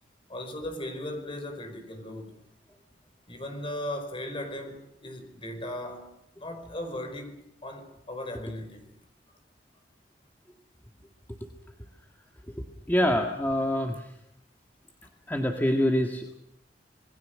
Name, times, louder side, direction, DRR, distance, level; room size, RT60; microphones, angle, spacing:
voice 1, 0.3-2.4 3.3-6.1 6.4-7.4 7.6-8.9, left 1 dB, 30° left, 4.8 m, -37 dB
voice 2, 12.5-14.1 15.3-16.3, equal, 10° left, 1.8 m, -26 dB
27.5 x 20.5 x 6.5 m
head